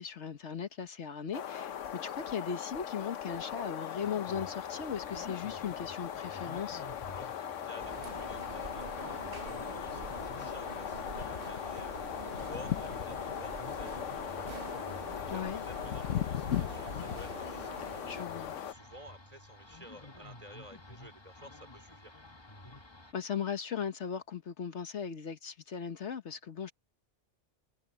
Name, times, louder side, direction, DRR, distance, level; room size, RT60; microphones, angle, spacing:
voice 1, 0.0-6.8 15.3-15.6 18.1-18.6 23.1-26.7, left 7 dB, 70° left, 1.4 m, -38 dB
sound 1, 1.3-18.7, left 10 dB, 90° left, 1.2 m, -38 dB
sound 2, 4.0-23.1, left 2 dB, 20° left, 1.6 m, -52 dB
voice 2, 7.1-17.9 18.3-22.1, equal, 30° right, 3.9 m, -53 dB
sound 3, 7.8-18.2, right 5 dB, 50° right, 1.2 m, -46 dB
omnidirectional pair, 1.2 m